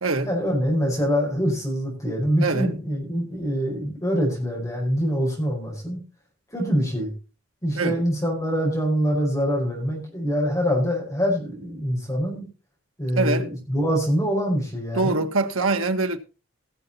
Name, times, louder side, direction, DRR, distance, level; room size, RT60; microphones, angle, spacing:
voice 1, 0.3-6.0 6.5-7.1 7.6-12.4 13.0-15.2, equal, 15° left, 4.9 m, -24 dB
voice 2, 2.4-2.7 7.7-8.0 13.2-13.5 14.9-16.2, right 3 dB, 85° right, 1.3 m, -23 dB
17.5 x 7.0 x 4.1 m
head